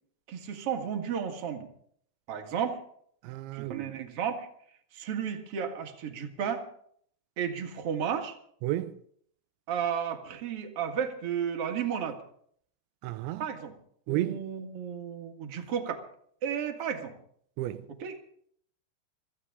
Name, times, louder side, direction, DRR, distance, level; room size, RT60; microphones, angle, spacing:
voice 1, 0.3-1.7 2.3-2.8 3.5-4.5 4.9-6.7 7.4-8.4 9.7-12.2 13.4-13.7 14.1-16.0 16.4-17.1 18.0-18.2, right 8 dB, 50° right, 1.9 m, -33 dB
voice 2, 3.2-3.9 8.6-9.0 13.0-13.5 14.1-14.4 17.6-17.9, right 15 dB, 90° right, 3.1 m, -32 dB
24.5 x 15.0 x 3.7 m
omnidirectional pair, 5.1 m